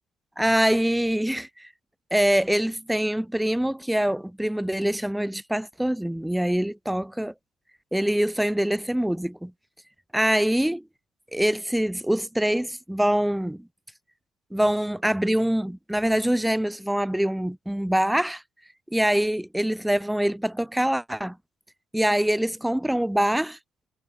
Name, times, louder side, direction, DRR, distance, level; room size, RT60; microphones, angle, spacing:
voice 1, 0.4-1.7 2.1-7.3 7.9-9.5 10.1-10.8 11.3-13.7 14.5-18.4 18.9-21.4 21.9-23.6, right 1 dB, 5° right, 0.6 m, -24 dB
figure-of-eight pair, 45°, 0 cm